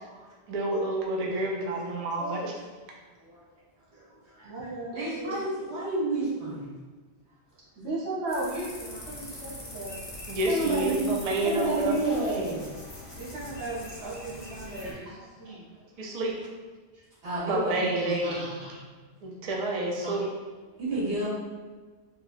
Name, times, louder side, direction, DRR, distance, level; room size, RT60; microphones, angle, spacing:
voice 1, 0.5-2.4 10.3-11.9 16.0-16.3 17.5-18.4 19.2-20.2, right 2 dB, 60° right, -2 dB, 0.4 m, -29 dB
voice 2, 2.2-2.5 4.4-5.4 7.8-10.0 12.0-12.1 13.1-15.6 18.0-18.8 20.0-20.1, right 2 dB, 25° right, -8 dB, 0.7 m, -36 dB
voice 3, 3.9-4.7 4.9-6.6 8.9-9.0 9.6-9.7 10.5-11.1 11.4-12.6 15.1-15.2 17.2-18.4 20.8-21.3, right 2 dB, 80° right, -8 dB, 1.3 m, -30 dB
sound 1, 8.3-14.9, left 1 dB, 35° left, 0.4 m, -42 dB
3.0 x 2.3 x 2.4 m, 1.3 s
omnidirectional pair, 1.1 m